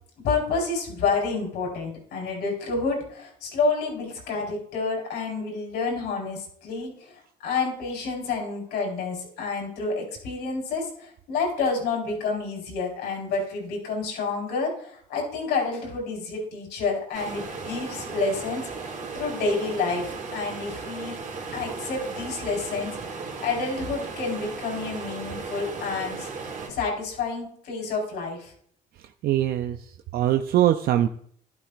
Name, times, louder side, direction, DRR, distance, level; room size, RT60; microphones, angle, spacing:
voice 1, 0.2-6.9 7.4-18.7 19.1-21.2 21.5-23.0 23.4-26.3 26.7-28.5, left 4 dB, 80° left, 0 dB, 4.3 m, -29 dB
sound 1, 17.1-26.7, right 4 dB, 45° right, 3.2 m, -36 dB
voice 2, 29.2-29.8 30.1-31.1, right 12 dB, 65° right, 7 dB, 0.5 m, -22 dB
12.0 x 11.5 x 2.5 m, 0.62 s
cardioid pair, 110°, 17 cm